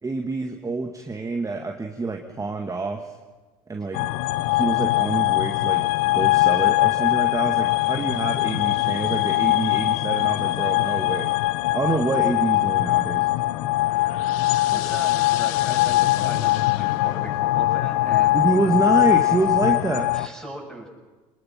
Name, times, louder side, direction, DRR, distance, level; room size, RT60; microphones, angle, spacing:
voice 1, 0.0-3.1 3.7-4.0 4.5-5.9 6.1-11.3 11.7-13.3 18.3-20.1, right 3 dB, 20° right, 3 dB, 2.0 m, -26 dB
sound 1, 3.9-20.3, left 17 dB, 70° left, 0.9 m, -21 dB
voice 2, 14.7-18.3 20.1-20.9, equal, 5° left, 1 dB, 7.7 m, -37 dB
27.5 x 20.5 x 5.9 m, 1.3 s
hypercardioid pair, 70°, 18 cm